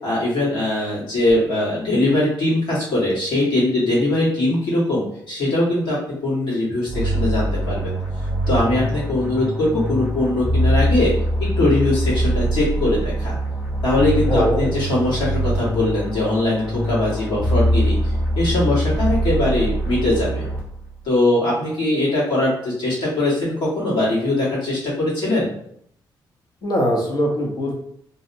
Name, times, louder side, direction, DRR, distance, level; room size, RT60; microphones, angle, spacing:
voice 1, 0.0-6.0 6.2-7.9 8.5-11.1 11.6-13.4 13.8-20.5 21.0-25.5, left 1 dB, 85° left, -7 dB, 1.4 m, -21 dB
sound 1, 6.9-21.0, equal, 20° left, 0.9 m, -23 dB
voice 2, 14.3-14.7 26.6-27.8, equal, 55° left, -1 dB, 0.8 m, -21 dB
2.6 x 2.1 x 2.6 m, 0.69 s
cardioid pair, 110°, 8 cm